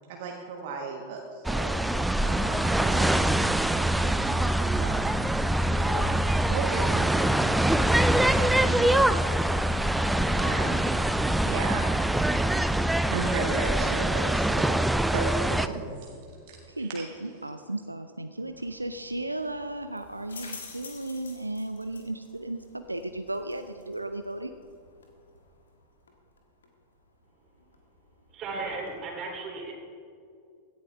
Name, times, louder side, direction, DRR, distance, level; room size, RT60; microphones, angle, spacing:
voice 1, 0.1-1.8 2.2-3.2 3.6-5.2 5.7-6.1 6.5-7.4 8.4-9.0 10.3-10.8 11.4-11.9 13.1-14.7 15.1-16.1 16.5-17.0, right 4 dB, 50° right, 0 dB, 1.5 m, -35 dB
sound 1, 1.4-15.7, right 1 dB, 5° right, 0.4 m, -24 dB
voice 2, 16.7-24.5, right 1 dB, 85° right, 9 dB, 0.4 m, -35 dB
sound 2, 18.4-29.0, left 4 dB, 70° left, 1.8 m, -51 dB
voice 3, 28.3-29.7, right 3 dB, 30° right, 0 dB, 3.3 m, -35 dB
16.5 x 11.5 x 3.6 m, 2.4 s
figure-of-eight pair, 90°, 0 cm